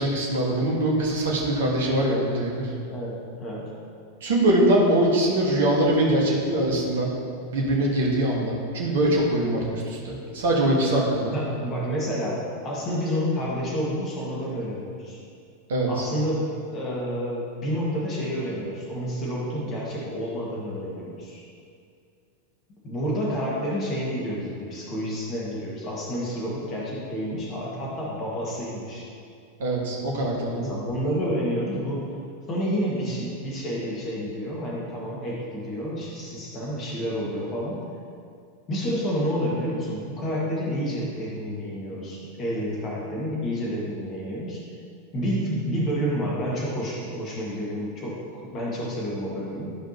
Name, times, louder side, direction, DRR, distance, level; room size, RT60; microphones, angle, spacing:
voice 1, 0.0-2.7 4.2-7.1 7.5-11.3 15.7-16.0 29.6-30.7, right 1 dB, 60° right, -3 dB, 1.5 m, -23 dB
voice 2, 2.9-3.7 11.3-15.2 15.8-21.4 22.8-29.1 30.5-32.1 32.5-37.8 38.7-44.6 45.1-49.8, equal, 30° left, -5 dB, 1.7 m, -29 dB
12.5 x 5.1 x 2.9 m, 2.4 s
figure-of-eight pair, 90°, 0 cm